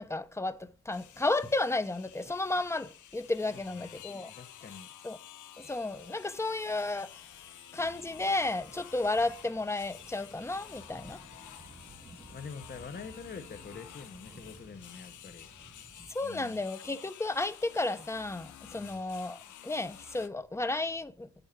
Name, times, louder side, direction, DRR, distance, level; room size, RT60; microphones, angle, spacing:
voice 1, 0.0-4.3 5.0-5.2 5.6-7.2 7.7-11.2 16.1-21.3, left 2 dB, 10° left, 0.7 m, -33 dB
sound 1, 0.9-20.3, left 10 dB, 85° left, 0.9 m, -51 dB
voice 2, 3.4-3.7 4.3-4.9 12.3-15.5 16.2-16.6 18.7-19.1, left 5 dB, 35° left, 1.0 m, -46 dB
sound 2, 7.8-16.1, right 2 dB, 20° right, 1.2 m, -55 dB
9.0 x 7.8 x 5.8 m
wide cardioid pair, 145°, 29 cm